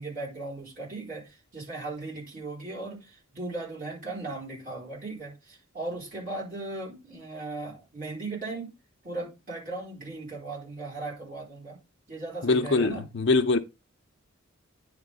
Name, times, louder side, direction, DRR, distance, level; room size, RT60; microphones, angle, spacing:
voice 1, 0.0-8.7 9.0-11.8 12.1-13.1, right 2 dB, 40° right, 4.3 m, -37 dB
voice 2, 12.4-13.6, left 3 dB, 55° left, 0.6 m, -23 dB
9.6 x 3.6 x 5.3 m
head